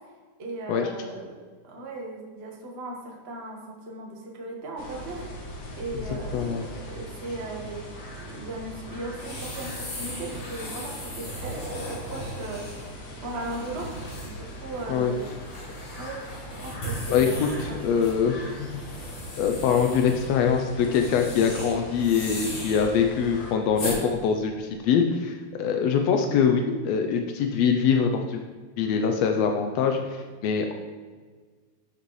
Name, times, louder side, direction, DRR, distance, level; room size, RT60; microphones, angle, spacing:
voice 1, 0.4-1.3 1.6-5.2 5.8-7.8 8.2-15.4 16.0-16.2 16.6-17.4 17.7-18.3, right 2 dB, 75° right, -1 dB, 0.5 m, -37 dB
sound 1, 4.8-23.5, equal, 50° left, 1.5 m, -41 dB
voice 2, 6.3-6.6 14.9-15.1 17.1-18.7 19.4-28.4 28.8-30.7, left 6 dB, 85° left, 4 dB, 1.5 m, -24 dB
sound 2, 9.2-24.0, equal, 65° left, 4.3 m, -38 dB
12.5 x 6.7 x 3.2 m, 1.5 s
omnidirectional pair, 3.6 m